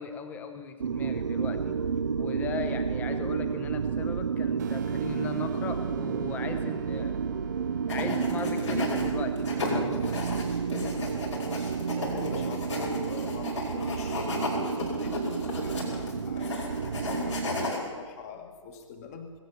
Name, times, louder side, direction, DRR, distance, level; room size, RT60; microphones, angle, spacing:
voice 1, 0.0-1.8 2.2-7.2 7.9-10.2, left 5 dB, 10° left, 9 dB, 0.8 m, -38 dB
sound 1, 0.8-17.7, right 6 dB, 65° right, 0.5 m, -31 dB
sound 2, 4.6-9.6, right 8 dB, 35° right, 0.9 m, -43 dB
sound 3, 7.9-9.0 9.4-17.8, left 3 dB, 65° left, 5.3 m, -34 dB
voice 2, 10.8-11.2 11.9-15.2 15.6-19.3, left 5 dB, 30° left, 6 dB, 1.5 m, -42 dB
20.5 x 8.7 x 7.0 m, 1.5 s
figure-of-eight pair, 130°, 17 cm